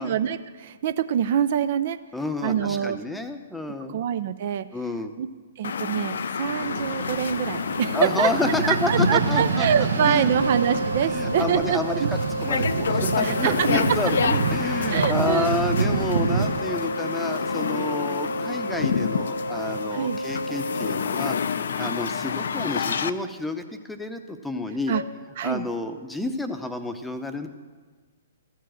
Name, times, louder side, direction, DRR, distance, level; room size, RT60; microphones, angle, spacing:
voice 1, 0.0-2.0 2.4-3.0 3.9-4.7 5.2-5.3 5.6-12.1 13.2-13.7 14.9-15.6 18.4-18.6 19.9-20.2 21.8-21.9 24.9-25.0 25.4-25.7, right 9 dB, 50° right, 11 dB, 0.4 m, -25 dB
voice 2, 2.1-4.0 4.7-5.1 7.9-9.7 10.0-10.4 11.0-24.9 25.4-27.5, left 2 dB, 5° left, 7 dB, 0.7 m, -30 dB
sound 1, 5.6-23.1, left 6 dB, 65° left, 0.4 m, -29 dB
sound 2, 6.5-16.6, right 4 dB, 70° right, 1.0 m, -27 dB
sound 3, 10.3-21.0 24.9-25.0, right 1 dB, 90° left, 0.9 m, -32 dB
14.0 x 4.6 x 7.5 m, 1.4 s
figure-of-eight pair, 120°, 0 cm